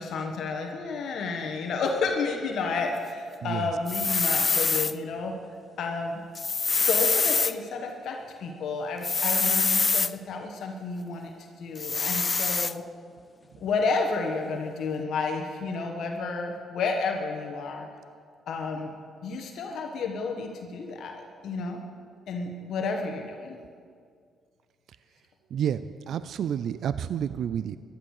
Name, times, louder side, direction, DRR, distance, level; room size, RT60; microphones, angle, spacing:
voice 1, 0.0-5.3 5.8-6.2 6.8-11.3 11.6-12.8 13.6-17.9 18.5-18.9 19.2-21.8 22.3-23.6, left 4 dB, 70° left, 2 dB, 1.4 m, -31 dB
sound 1, 3.9-4.9 6.3-7.5 9.0-10.1 11.8-12.7, left 4 dB, 30° left, 0.4 m, -25 dB
voice 2, 25.5-27.8, right 9 dB, 65° right, 14 dB, 0.4 m, -30 dB
14.5 x 11.5 x 6.6 m, 2.2 s
cardioid pair, 90°, 0 cm